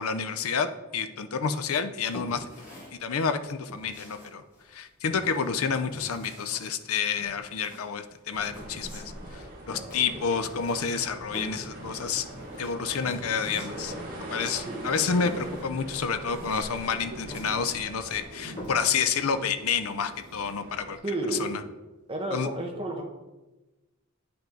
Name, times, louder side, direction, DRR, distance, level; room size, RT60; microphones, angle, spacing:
voice 1, 0.0-2.5 2.9-4.4 4.7-12.2 12.6-13.9 14.3-21.0 21.3-21.6 22.3-22.5, left 6 dB, 70° left, 10 dB, 0.5 m, -29 dB
sound 1, 1.6-19.1, equal, 40° left, 2.8 m, -46 dB
sound 2, 8.3-18.2, right 1 dB, 40° right, 2.1 m, -41 dB
voice 2, 9.7-10.2 14.7-15.3 21.0-21.6 22.1-23.0, right 2 dB, 25° right, 1 dB, 1.1 m, -33 dB
sound 3, 14.7-21.0, right 1 dB, 55° right, 1.1 m, -47 dB
8.9 x 5.8 x 3.8 m, 1.1 s
head